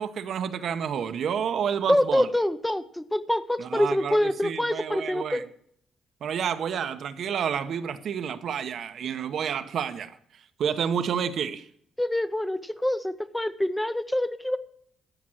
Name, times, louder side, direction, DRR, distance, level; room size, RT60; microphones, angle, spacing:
voice 1, 0.0-2.3 3.6-5.4 6.2-10.2 10.6-11.7, right 7 dB, 65° right, 0.9 m, -29 dB
voice 2, 1.9-5.4 12.0-14.6, left 1 dB, 5° left, 0.7 m, -25 dB
13.0 x 6.0 x 7.7 m
cardioid pair, 90°, 0 cm